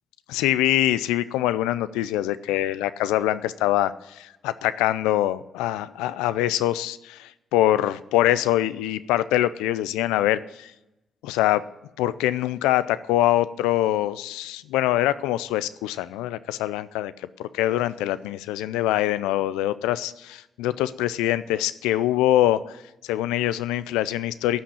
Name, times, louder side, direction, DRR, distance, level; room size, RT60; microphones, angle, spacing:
voice 1, 0.3-10.7 11.2-11.6 12.0-24.6, left 14 dB, 90° left, 15 dB, 0.4 m, -24 dB
13.0 x 6.0 x 8.6 m, 0.95 s
hypercardioid pair, 45°, 0 cm